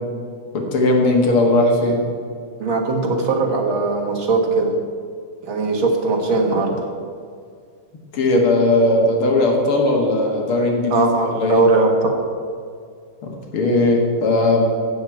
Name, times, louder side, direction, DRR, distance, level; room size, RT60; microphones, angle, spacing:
voice 1, 0.5-2.0 8.1-11.6 13.2-14.6, left 2 dB, 85° left, 1 dB, 2.5 m, -18 dB
voice 2, 2.6-4.7 5.5-6.9 10.9-12.1, right 3 dB, 70° right, 2 dB, 2.4 m, -19 dB
13.5 x 5.0 x 8.9 m, 2.2 s
omnidirectional pair, 2.3 m